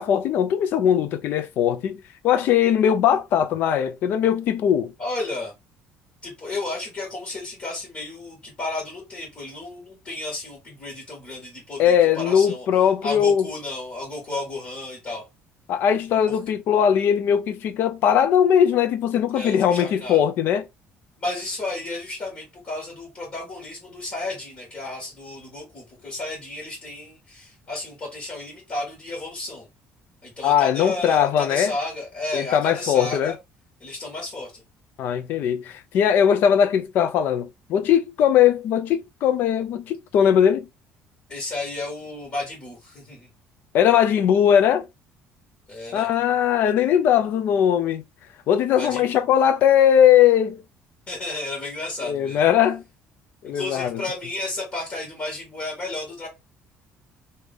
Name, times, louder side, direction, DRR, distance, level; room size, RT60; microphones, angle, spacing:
voice 1, 0.0-4.9 11.8-13.5 15.7-20.6 30.4-31.7 32.3-33.3 35.0-40.7 43.7-44.9 45.9-48.0 48.5-50.6 52.0-52.8 53.4-54.0, left 9 dB, 55° left, 0.5 m, -20 dB
voice 2, 5.0-5.5 6.2-12.7 13.0-15.2 16.3-16.4 19.3-20.3 21.2-29.7 30.2-33.3 33.8-34.6 41.3-43.3 45.7-46.1 48.7-49.2 51.1-52.5 53.4-56.3, left 2 dB, 30° left, 1.7 m, -32 dB
3.3 x 2.8 x 3.5 m
cardioid pair, 165°, 4 cm